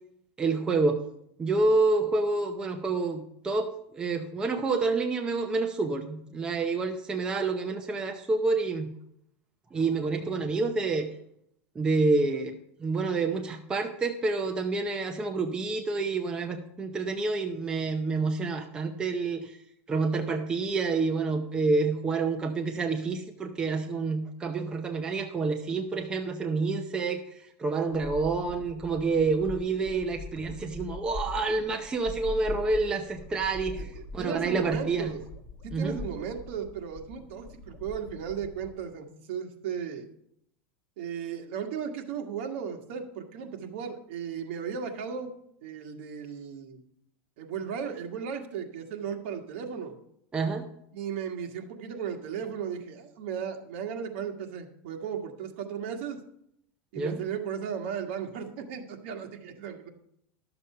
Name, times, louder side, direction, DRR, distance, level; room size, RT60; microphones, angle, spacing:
voice 1, 0.4-1.0 1.4-3.7 3.9-8.9 9.7-11.1 11.8-12.5 12.8-19.5 19.9-27.2 27.6-35.1 35.7-36.0 50.3-50.7 57.0-57.2, right 3 dB, 10° right, 4 dB, 0.6 m, -28 dB
sound 1, 27.9-38.7, left 3 dB, 15° left, 1.7 m, -42 dB
voice 2, 33.8-35.2 35.6-40.1 41.0-45.3 45.6-46.8 47.4-49.9 50.9-56.2 56.9-59.9, right 7 dB, 60° right, 4 dB, 1.6 m, -36 dB
12.0 x 6.9 x 5.6 m, 0.74 s
supercardioid pair, 165°, 7 cm